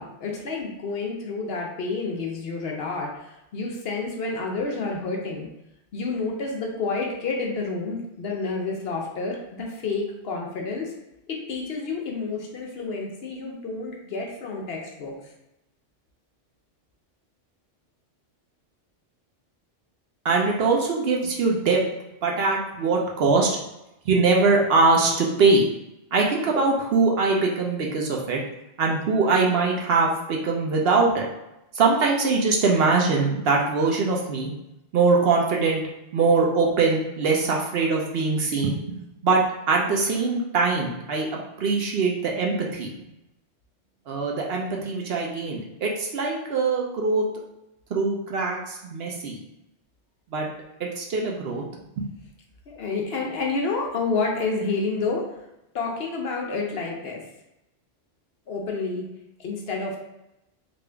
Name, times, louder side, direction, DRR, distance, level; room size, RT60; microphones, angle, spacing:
voice 1, 0.0-5.5 5.9-10.9 11.3-15.1 52.7-55.2 55.7-57.2 58.5-59.0 59.4-60.0, left 3 dB, 60° left, 0 dB, 0.8 m, -29 dB
voice 2, 20.2-21.8 22.2-23.5 24.1-25.7 26.1-28.4 28.8-31.3 31.7-34.5 34.9-35.8 36.1-39.0 39.2-41.3 41.6-42.9 44.1-47.2 47.9-49.4 50.3-50.5 50.8-51.6 52.0-52.1, right 4 dB, 65° right, -1 dB, 0.8 m, -22 dB
3.5 x 2.5 x 3.3 m, 0.89 s
omnidirectional pair, 1.2 m